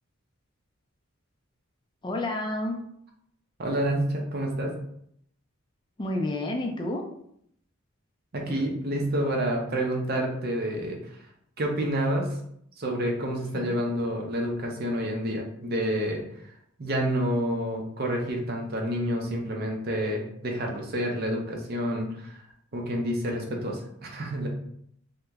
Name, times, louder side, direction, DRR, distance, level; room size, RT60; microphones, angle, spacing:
voice 1, 2.0-2.8 6.0-7.0 8.5-8.6 13.5-13.8, left 1 dB, 20° left, 1 dB, 0.4 m, -30 dB
voice 2, 3.6-4.8 8.3-11.3 11.6-12.4 12.8-24.5, right 1 dB, 50° right, 1 dB, 0.6 m, -29 dB
2.9 x 2.2 x 3.4 m, 0.70 s
head